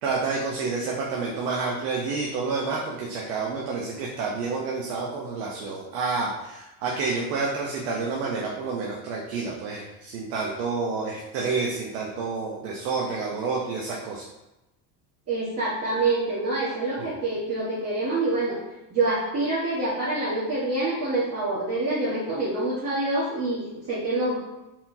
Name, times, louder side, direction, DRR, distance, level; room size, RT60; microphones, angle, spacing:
voice 1, 0.0-14.2 17.0-17.1, right 4 dB, 85° right, -2 dB, 0.9 m, -29 dB
voice 2, 15.3-18.6 18.9-24.4, right 2 dB, 30° right, -8 dB, 1.4 m, -26 dB
4.7 x 3.6 x 2.7 m, 0.98 s
supercardioid pair, 110°, 46 cm